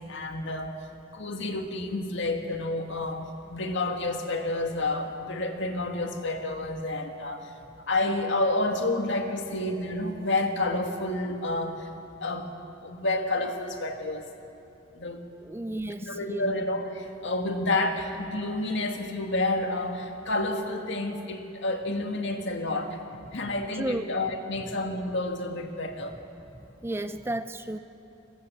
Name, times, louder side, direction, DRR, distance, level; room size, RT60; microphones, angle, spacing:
voice 1, 0.1-0.8 1.1-7.5 7.9-11.8 12.2-12.5 12.8-14.3 15.0-15.2 16.1-23.0 23.3-26.2, left 2 dB, 60° left, 4 dB, 2.1 m, -29 dB
voice 2, 15.4-16.5 23.8-24.1 26.8-27.8, right 1 dB, 10° right, 10 dB, 0.5 m, -32 dB
30.0 x 15.0 x 8.6 m, 3.0 s
head